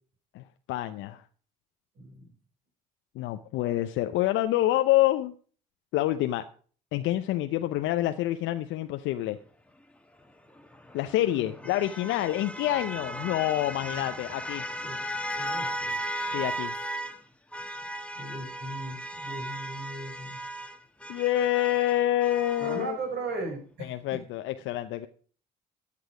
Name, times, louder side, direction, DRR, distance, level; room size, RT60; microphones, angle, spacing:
voice 1, 0.3-1.2 3.2-5.3 5.9-6.4 6.9-9.4 10.9-14.6 16.3-16.7 21.1-23.0 23.8-25.1, left 14 dB, 70° left, 9 dB, 0.7 m, -27 dB
voice 2, 2.0-2.3 11.3-11.7 13.8-14.2 14.8-15.0 15.4-15.9 18.2-20.4 22.6-24.2, right 2 dB, 60° right, 1 dB, 6.1 m, -38 dB
sound 1, 10.6-17.2 17.5-22.9, right 1 dB, 5° left, 1.6 m, -36 dB
14.5 x 8.5 x 4.9 m, 0.43 s
hypercardioid pair, 55°, 21 cm